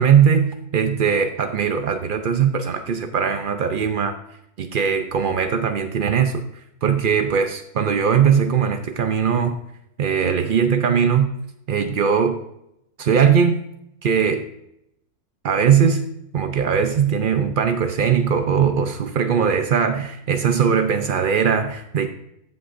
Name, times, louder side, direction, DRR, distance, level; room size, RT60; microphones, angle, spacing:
voice 1, 0.0-4.2 4.6-6.4 6.8-9.6 10.0-11.3 11.7-12.4 13.0-13.6 14.0-14.5 15.4-16.1 16.3-22.1, right 7 dB, 85° right, 7 dB, 0.4 m, -20 dB
14.5 x 5.7 x 2.5 m, 0.78 s
omnidirectional pair, 1.6 m